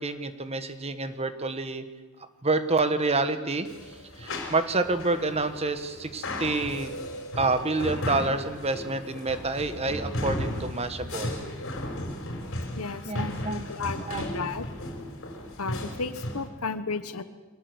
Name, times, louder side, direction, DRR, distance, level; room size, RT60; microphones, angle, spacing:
voice 1, 0.0-1.8 2.2-6.9 7.3-11.4 13.0-14.5, right 3 dB, 30° right, 10 dB, 1.5 m, -28 dB
sound 1, 3.6-16.5, left 1 dB, 60° left, 4.6 m, -35 dB
voice 2, 12.7-14.7 15.6-17.2, left 4 dB, 80° left, 12 dB, 1.3 m, -33 dB
24.0 x 19.0 x 8.1 m, 1.2 s
head